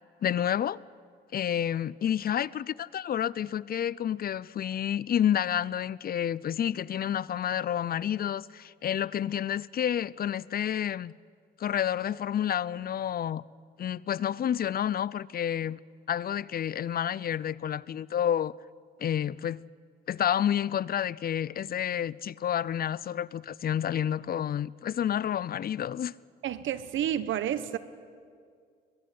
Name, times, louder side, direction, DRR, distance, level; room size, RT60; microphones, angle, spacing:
voice 1, 0.2-0.8 1.3-11.1 11.6-13.4 13.8-15.8 16.1-18.5 19.0-19.7 20.1-26.1, left 10 dB, 50° left, 0.6 m, -29 dB
voice 2, 26.4-27.8, right 10 dB, 75° right, 1.2 m, -30 dB
22.0 x 22.0 x 9.5 m
cardioid pair, 90°, 20 cm